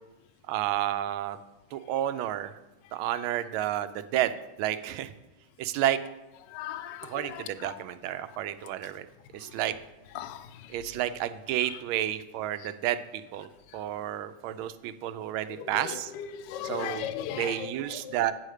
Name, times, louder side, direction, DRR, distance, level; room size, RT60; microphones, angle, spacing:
voice 1, 0.5-1.4 1.7-2.5 2.9-5.1 5.6-6.0 7.0-9.1 9.3-9.8 10.7-16.1 16.6-18.3, right 12 dB, 90° right, 12 dB, 1.4 m, -31 dB
voice 2, 6.5-7.4 10.2-10.5 16.3-17.7 18.1-18.2, left 10 dB, 75° left, 10 dB, 1.1 m, -36 dB
8.4 x 7.7 x 4.8 m, 1.0 s
omnidirectional pair, 2.2 m